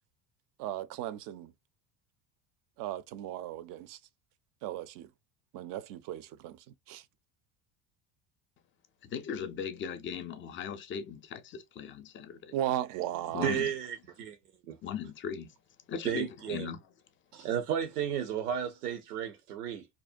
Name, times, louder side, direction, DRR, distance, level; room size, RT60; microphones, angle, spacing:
voice 1, 0.6-1.5 2.8-4.0 4.6-5.1 5.5-7.0 12.5-13.5, right 12 dB, 50° right, 0.4 m, -36 dB
voice 2, 9.0-12.6 13.3-13.7 14.8-15.5 15.9-16.8, left 7 dB, 30° left, 0.4 m, -38 dB
voice 3, 13.4-14.4 14.7-14.8 16.0-16.7 17.3-19.9, right 9 dB, 90° right, 0.7 m, -33 dB
2.5 x 2.1 x 2.4 m
hypercardioid pair, 80°, 45 cm